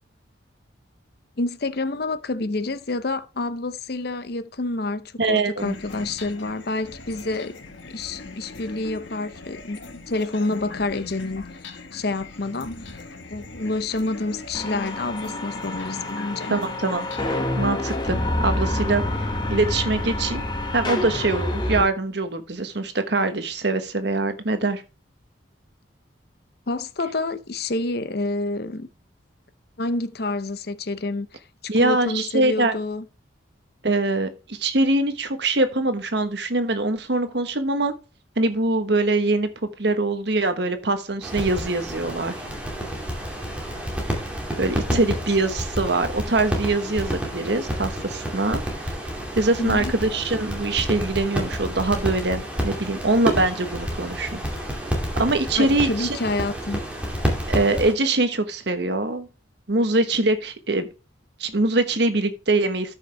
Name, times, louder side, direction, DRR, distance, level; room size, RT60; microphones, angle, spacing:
voice 1, 1.4-7.5 7.8-9.8 10.1-13.0 13.3-16.6 26.7-28.9 29.8-33.1 44.9-45.2 49.6-49.9 55.6-56.8, left 2 dB, 50° left, 0.7 m, -28 dB
voice 2, 5.2-5.7 16.5-17.1 17.6-19.0 19.5-20.4 20.7-24.8 31.7-32.7 33.8-37.9 38.4-39.5 39.8-42.4 44.6-49.0 49.3-54.4 55.2-56.1 57.5-59.3 59.7-60.9 61.4-62.9, right 2 dB, 60° right, 1.3 m, -23 dB
sound 1, 5.6-17.4, left 3 dB, 75° left, 1.6 m, -40 dB
sound 2, 14.5-21.8, left 1 dB, 20° left, 1.4 m, -27 dB
sound 3, 41.2-57.9, equal, 5° right, 2.4 m, -29 dB
13.0 x 5.8 x 3.4 m
head